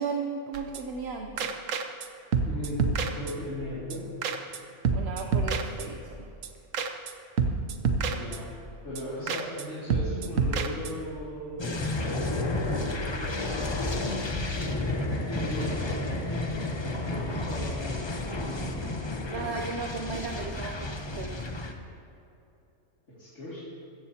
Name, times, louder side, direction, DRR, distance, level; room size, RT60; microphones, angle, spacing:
voice 1, 0.0-1.5 4.9-6.3 19.3-21.6, right 4 dB, 60° right, 2 dB, 1.0 m, -35 dB
sound 1, 0.5-1.1 1.4-2.1 2.3-3.6 3.9-4.0 4.2-4.6 4.8-6.2 6.4-6.5 6.7-7.1 7.4-8.7 9.0-9.1 9.3-9.6 9.9-11.1, right 5 dB, 80° right, 1.2 m, -29 dB
voice 2, 2.5-4.1 8.1-8.5 8.8-14.5 15.3-16.0 17.0-17.9 18.3-19.6 23.2-23.6, left 1 dB, 70° left, -9 dB, 2.8 m, -38 dB
sound 2, 11.6-21.7, left 2 dB, 25° left, 0.8 m, -31 dB
16.0 x 14.5 x 2.9 m, 2.8 s
omnidirectional pair, 1.3 m